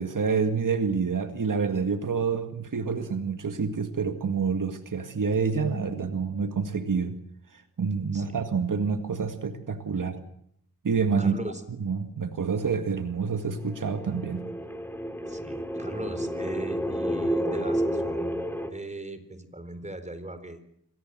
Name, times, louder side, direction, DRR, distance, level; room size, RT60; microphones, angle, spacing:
voice 1, 0.0-7.2 7.5-10.2 10.8-11.4 11.8-14.4, right 5 dB, 60° right, 7 dB, 2.1 m, -28 dB
voice 2, 8.1-8.5 11.2-11.6 15.3-18.3 18.6-20.6, right 2 dB, 20° right, 10 dB, 4.1 m, -39 dB
sound 1, 13.6-18.7, equal, 5° left, 3.0 m, -30 dB
25.0 x 18.0 x 7.6 m, 0.73 s
cardioid pair, 50°, 36 cm